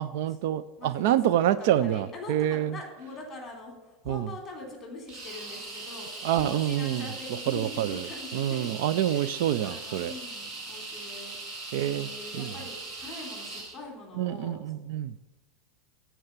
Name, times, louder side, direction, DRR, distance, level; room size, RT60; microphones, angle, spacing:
voice 1, 0.0-2.8 4.1-4.3 6.2-7.1 7.5-8.1 8.3-10.1 11.7-12.1 12.4-12.5 14.2-15.1, right 11 dB, 60° right, 15 dB, 0.4 m, -27 dB
voice 2, 1.3-8.7 9.1-9.3 9.6-11.4 11.9-14.6, left 2 dB, 15° left, 0 dB, 3.1 m, -43 dB
sound 1, 5.1-13.8, right 3 dB, 30° right, 1.9 m, -40 dB
12.5 x 4.5 x 8.1 m, 1.1 s
supercardioid pair, 160°, 0 cm